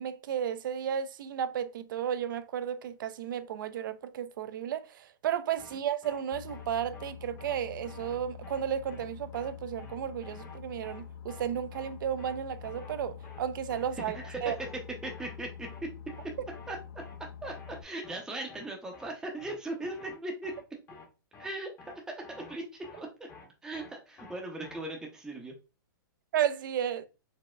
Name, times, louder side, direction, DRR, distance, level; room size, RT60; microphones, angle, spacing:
voice 1, 0.0-14.6 26.3-27.0, right 9 dB, 65° right, 0.4 m, -33 dB
sound 1, 5.6-5.8 6.0-6.2 6.5-6.7 6.9-7.1 7.4-7.6 7.8-8.2 8.4-8.6 8.9-9.1 9.3-9.5 9.8-10.0 10.2-10.6 10.8-11.0 11.3-11.5 11.7-11.9 12.2-12.4 12.6-13.0 13.2-13.4 13.7-13.9 14.1-14.3 14.6-14.8 15.0-15.4 15.6-15.8 16.1-16.3 16.5-16.7 17.0-17.2 17.4-17.8 18.0-18.2 18.5-18.7 18.9-19.1 19.4-19.6 19.8-20.2 20.4-20.6 20.9-21.1 21.3-21.5 21.8-22.0 22.2-22.6 22.8-23.0 23.3-23.5 23.7-23.9 24.2-24.4 24.6-24.8, left 4 dB, 25° left, 0.8 m, -51 dB
Boat Water vehicle, 6.3-17.8, left 7 dB, 65° left, 0.4 m, -46 dB
voice 2, 14.0-14.7 15.0-15.9 16.7-16.8 17.4-20.5 21.4-23.1 23.6-25.5, right 2 dB, 5° right, 0.5 m, -39 dB
4.1 x 2.1 x 2.2 m
hypercardioid pair, 130°, 12 cm